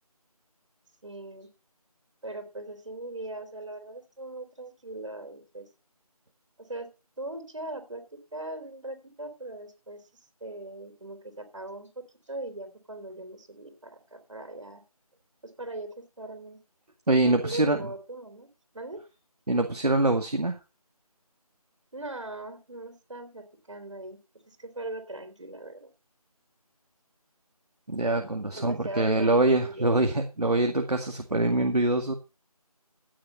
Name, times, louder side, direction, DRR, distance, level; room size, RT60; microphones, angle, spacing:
voice 1, 1.0-1.5 2.2-5.7 6.6-6.9 7.2-8.0 8.3-11.9 12.2-14.8 15.6-15.9 16.2-16.6 17.2-18.5 18.7-19.0 21.9-24.2 24.5-25.9 28.5-29.4 29.7-30.1, right 2 dB, 55° right, 6 dB, 3.2 m, -40 dB
voice 2, 17.1-17.8 19.5-20.6 27.9-32.1, right 2 dB, 90° right, 4 dB, 2.1 m, -24 dB
16.5 x 6.9 x 5.5 m, 0.31 s
figure-of-eight pair, 170°, 20 cm